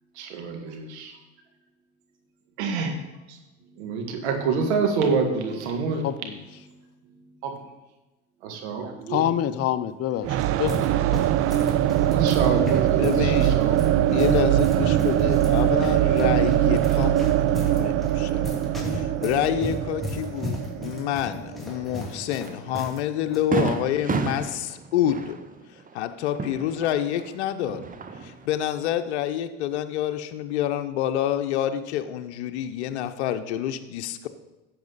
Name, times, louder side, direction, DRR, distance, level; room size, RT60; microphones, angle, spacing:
voice 1, 0.2-1.1 2.6-2.9 3.3-3.4 3.8-6.1 7.4-7.6 8.4-9.3 12.0-14.3, right 5 dB, 80° right, 4 dB, 2.0 m, -27 dB
voice 2, 6.0-6.4 9.1-10.9, left 11 dB, 45° left, 12 dB, 0.7 m, -26 dB
sound 1, 10.1-23.0 23.3-23.4 24.1-24.4, left 1 dB, ahead, 2.8 m, -36 dB
sound 2, 10.2-22.0, right 13 dB, 45° right, 0.5 m, -22 dB
voice 3, 12.9-13.7 14.0-18.5 18.8-25.4 25.9-27.8 28.2-34.3, left 11 dB, 80° left, 8 dB, 0.8 m, -28 dB
Fireworks, 22.5-22.6 23.0-23.1 23.5-27.3 27.6-28.5, right 4 dB, 25° right, 0.9 m, -30 dB
11.5 x 7.7 x 4.1 m, 1.0 s
hypercardioid pair, 85°, 33 cm